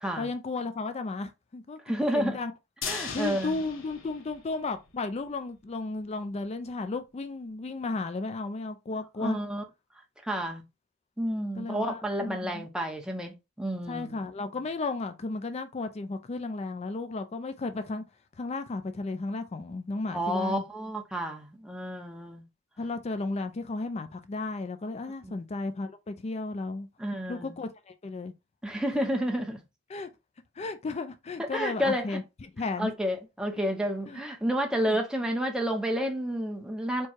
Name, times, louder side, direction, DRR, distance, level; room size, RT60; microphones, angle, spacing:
voice 1, 0.2-1.8 2.1-2.5 2.9-9.4 11.6-12.7 13.9-18.0 18.4-20.6 22.8-26.9 27.3-28.3 29.9-30.1 30.6-32.2 32.5-32.9 34.1-34.2 34.9-35.0, left 3 dB, 30° left, 0.4 m, -34 dB
voice 2, 1.9-2.4 2.8-3.6 9.2-9.6 10.2-10.6 11.2-14.2 20.1-22.4 25.2-25.4 27.0-27.6 28.6-29.6 31.5-32.2 32.8-37.1, equal, 5° right, 0.8 m, -30 dB
sound 1, 2.8-5.0 5.3-5.4 5.7-5.8, left 6 dB, 70° left, 1.0 m, -38 dB
4.5 x 2.2 x 4.4 m
head